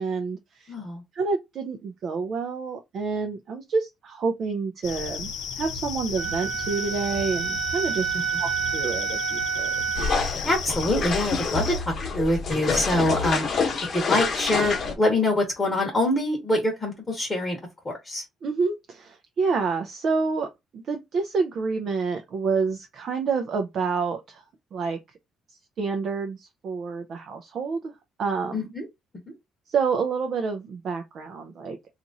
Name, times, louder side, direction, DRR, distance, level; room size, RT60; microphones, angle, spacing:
voice 1, 0.0-0.7 1.1-5.3 5.6-8.1 8.4-9.8 18.4-24.4 24.7-25.0 25.8-27.9 28.2-28.7 29.7-31.8, right 4 dB, 45° right, 0.5 m, -28 dB
voice 2, 0.7-1.0 10.4-13.6 13.9-17.6 17.8-18.2 28.5-28.8, left 1 dB, 15° left, 1.0 m, -25 dB
sound 1, 4.8-11.8, left 5 dB, 70° left, 0.7 m, -34 dB
Wind instrument woodwind instrument, 6.2-10.3, right 8 dB, 85° right, 0.8 m, -29 dB
sound 2, 9.9-14.9, left 4 dB, 35° left, 1.0 m, -27 dB
2.9 x 2.5 x 4.0 m
cardioid pair, 155°, 0 cm